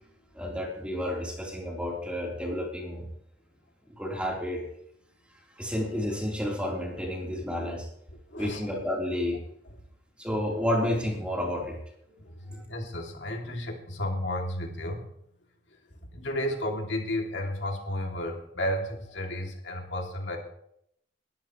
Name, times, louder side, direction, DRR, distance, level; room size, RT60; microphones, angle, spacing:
voice 1, 0.3-3.1 4.0-4.6 5.6-7.9 8.4-9.4 10.2-11.8 12.5-12.6, left 1 dB, 5° right, -2 dB, 3.9 m, -30 dB
voice 2, 8.3-8.6 12.1-15.1 15.7-20.4, left 1 dB, 85° left, 1 dB, 2.9 m, -33 dB
21.0 x 13.0 x 3.2 m, 0.72 s
head